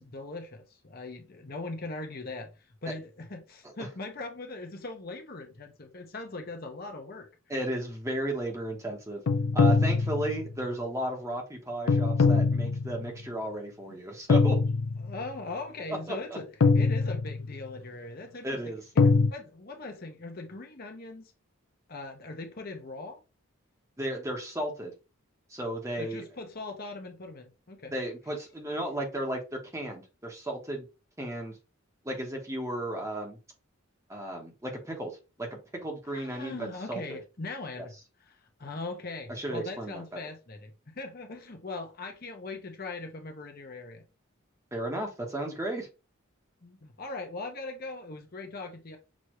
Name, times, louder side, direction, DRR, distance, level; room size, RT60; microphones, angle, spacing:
voice 1, 0.0-2.5 2.8-7.3 13.9-14.0 15.0-16.5 16.7-18.6 18.9-21.3 21.9-23.2 26.0-27.9 36.1-37.9 38.3-44.0 46.6-49.0, left 3 dB, 45° left, 0.9 m, -40 dB
voice 2, 7.5-9.2 9.5-14.6 15.9-16.4 18.4-18.8 24.0-24.9 25.5-26.2 27.9-30.9 31.2-31.6 32.0-33.4 34.1-37.2 37.8-37.9 39.3-40.3 44.7-45.9, right 1 dB, 15° right, 1.0 m, -34 dB
sound 1, 9.3-10.6 11.9-13.1 14.3-15.2 16.6-17.6 19.0-19.3, left 4 dB, 90° left, 0.5 m, -23 dB
6.2 x 2.7 x 3.1 m
head